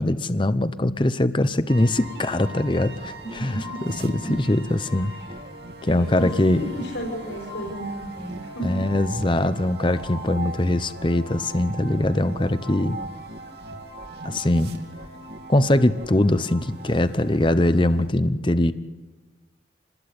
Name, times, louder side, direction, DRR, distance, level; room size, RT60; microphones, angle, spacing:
voice 1, 0.0-3.6 3.8-5.1 5.9-6.6 8.6-13.0 14.2-14.7 15.5-18.7, left 1 dB, 25° left, 13 dB, 0.8 m, -22 dB
sound 1, 1.7-18.1, right 1 dB, 60° right, 2.9 m, -39 dB
voice 2, 3.2-3.9 4.2-4.3 4.9-5.1 5.8-6.3 6.6-8.8, right 1 dB, 85° left, -1 dB, 5.9 m, -33 dB
27.5 x 20.5 x 8.6 m, 1.3 s
head